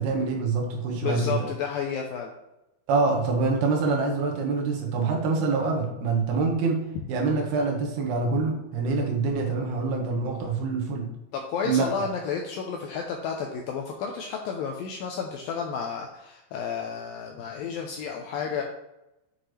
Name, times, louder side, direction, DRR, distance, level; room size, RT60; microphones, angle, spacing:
voice 1, 0.0-1.5 2.9-11.1 11.6-11.9, right 4 dB, 70° right, 1 dB, 3.1 m, -25 dB
voice 2, 0.9-2.3 11.3-18.6, left 6 dB, 85° left, 2 dB, 2.1 m, -31 dB
8.1 x 5.9 x 3.2 m, 0.92 s
omnidirectional pair, 4.9 m